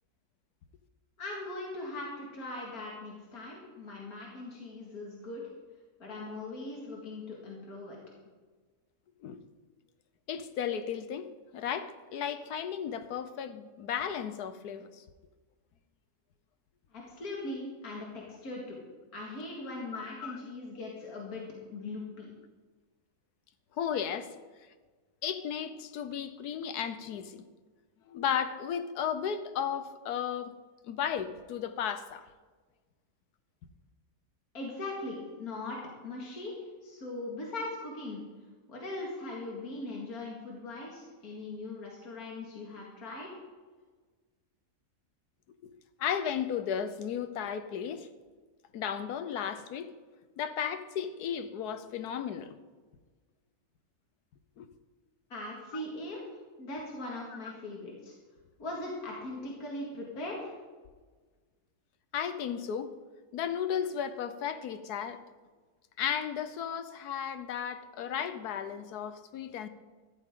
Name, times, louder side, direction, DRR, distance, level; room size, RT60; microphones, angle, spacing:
voice 1, 1.2-5.4 6.0-8.0 16.9-18.8 19.1-21.4 21.7-22.3 34.5-36.5 36.8-38.2 38.7-43.4 55.3-56.2 56.6-58.1 58.6-60.5, left 2 dB, 70° left, 2.6 m, -40 dB
voice 2, 10.3-15.0 19.9-20.4 23.8-24.3 25.2-27.4 28.1-30.5 30.9-32.3 45.6-45.7 46.0-48.1 48.7-49.9 50.4-52.6 54.6-54.7 62.1-62.9 63.3-65.2 66.0-69.7, left 8 dB, 90° left, 1.4 m, -34 dB
14.0 x 13.0 x 3.8 m
omnidirectional pair, 1.6 m